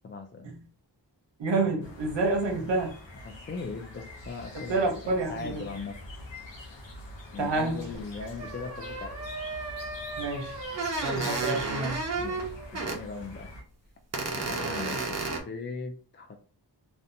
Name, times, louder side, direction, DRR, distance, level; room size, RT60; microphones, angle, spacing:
voice 1, 0.0-0.5 3.2-6.0 7.3-9.2 11.2-11.3 12.2-13.5 14.3-16.4, left 4 dB, 30° left, 5 dB, 0.3 m, -39 dB
voice 2, 1.4-2.9 4.7-5.6 7.4-7.9 8.2-8.3 10.2-10.6 11.0-12.0, right 3 dB, 80° right, 3 dB, 0.8 m, -28 dB
sound 1, 1.8-13.6, left 2 dB, 85° left, 0.7 m, -45 dB
sound 2, 7.9-8.0 8.4-13.0 13.4-13.5 14.1-15.4, right 3 dB, 35° right, 0.6 m, -33 dB
2.7 x 2.1 x 2.6 m, 0.39 s
cardioid pair, 50°, 44 cm